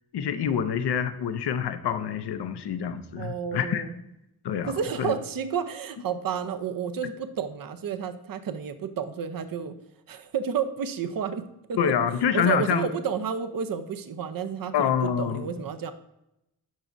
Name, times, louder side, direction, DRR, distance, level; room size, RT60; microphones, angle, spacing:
voice 1, 0.1-3.8 4.4-5.1 11.8-12.9 14.7-15.5, left 8 dB, 75° left, 11 dB, 0.7 m, -26 dB
voice 2, 3.2-3.9 4.7-9.8 10.1-11.9 12.3-15.9, right 7 dB, 55° right, 9 dB, 0.7 m, -31 dB
11.5 x 4.9 x 2.6 m, 0.85 s
supercardioid pair, 45°, 40 cm